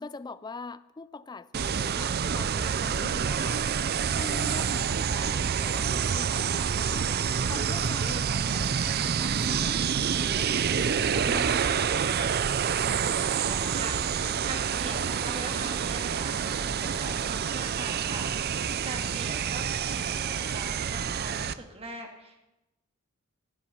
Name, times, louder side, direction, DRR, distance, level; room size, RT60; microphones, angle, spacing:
voice 1, 0.0-3.7 4.1-7.1 7.5-11.0 11.3-12.1, left 3 dB, 20° left, 16 dB, 0.3 m, -43 dB
sound 1, 1.5-21.5, right 7 dB, 45° right, 0.4 m, -28 dB
voice 2, 13.5-22.5, right 2 dB, 25° right, 3 dB, 1.9 m, -41 dB
16.0 x 8.4 x 5.6 m, 0.97 s
head